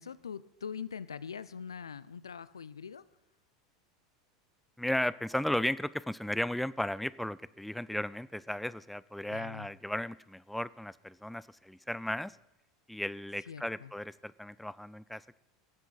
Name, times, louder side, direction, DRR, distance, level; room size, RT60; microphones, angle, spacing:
voice 1, 0.0-3.0 9.3-9.7 13.5-13.9, left 7 dB, 85° left, 18 dB, 0.4 m, -43 dB
voice 2, 4.8-12.3 12.9-15.4, left 1 dB, ahead, 19 dB, 0.3 m, -35 dB
17.5 x 7.9 x 4.0 m, 0.99 s
hypercardioid pair, 85°, 2 cm